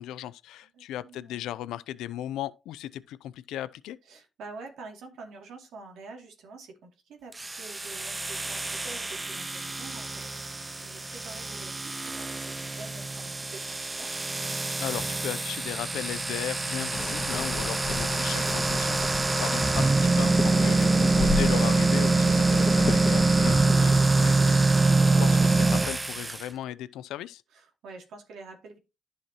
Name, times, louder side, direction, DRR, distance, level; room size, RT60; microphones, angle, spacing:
voice 1, 0.0-4.0 14.8-27.4, left 12 dB, 90° left, 0.4 m, -36 dB
voice 2, 0.7-1.4 4.0-10.5 10.8-14.1 25.1-25.5 27.5-28.8, right 3 dB, 80° right, 2.5 m, -47 dB
sound 1, 7.3-26.4, right 3 dB, 20° right, 0.3 m, -25 dB
sound 2, 16.9-24.0, left 4 dB, 35° left, 1.8 m, -35 dB
10.5 x 5.6 x 2.9 m
cardioid pair, 90°, 0 cm